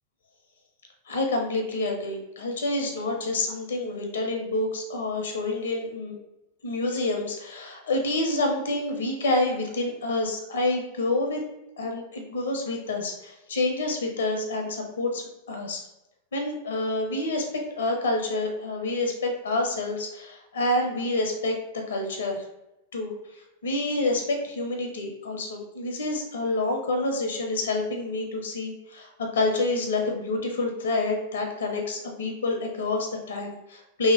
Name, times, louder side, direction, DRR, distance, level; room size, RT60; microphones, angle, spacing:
voice 1, 1.1-6.1 6.6-11.4 11.8-15.8 16.3-17.4 17.7-22.4 22.9-23.1 23.6-34.1, left 2 dB, 65° left, 2 dB, 0.6 m, -28 dB
2.8 x 2.7 x 3.0 m, 0.93 s
figure-of-eight pair, 90°, 0 cm